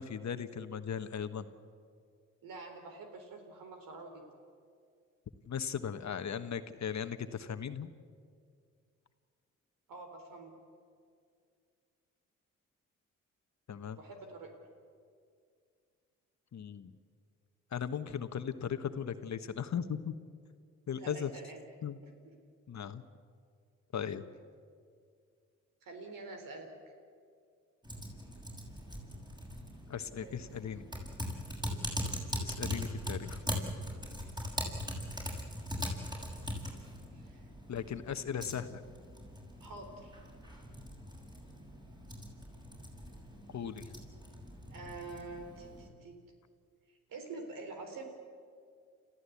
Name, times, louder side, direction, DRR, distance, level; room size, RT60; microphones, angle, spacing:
voice 1, 0.0-1.4 5.5-7.9 13.7-14.0 16.5-16.9 17.7-20.2 20.9-21.3 21.8-22.0 22.7-23.0 23.9-24.2 29.9-30.9 32.4-33.4 37.7-38.8 43.5-43.9, left 7 dB, 55° left, 10 dB, 1.4 m, -37 dB
voice 2, 2.4-4.2 9.9-10.5 13.9-14.5 21.0-21.6 22.2-22.3 25.8-26.7 30.2-30.5 37.1-37.5 39.6-40.2 44.7-46.2 46.9-48.0, right 3 dB, 75° right, 5 dB, 4.2 m, -46 dB
Typing, 27.8-45.9, equal, 10° right, 7.1 m, -41 dB
29.5 x 14.5 x 8.5 m, 2.2 s
supercardioid pair, 50°, 34 cm